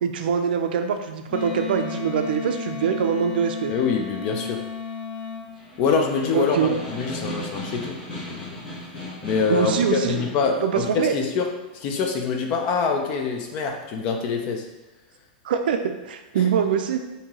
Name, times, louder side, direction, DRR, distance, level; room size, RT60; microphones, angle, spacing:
voice 1, 0.0-3.7 6.3-6.8 9.5-10.3 10.6-11.1 15.4-17.0, right 7 dB, 70° right, 6 dB, 0.4 m, -23 dB
Wind instrument woodwind instrument, 1.3-5.5, left 6 dB, 60° left, 0.9 m, -33 dB
voice 2, 3.7-4.6 5.8-8.0 8.3-8.6 9.2-11.5 11.7-14.7 16.4-16.5, left 5 dB, 25° left, 2 dB, 0.3 m, -25 dB
Snare drum, 5.4-10.4, equal, 5° left, 0.8 m, -36 dB
3.8 x 2.7 x 2.9 m, 1.1 s
supercardioid pair, 175°, 5 cm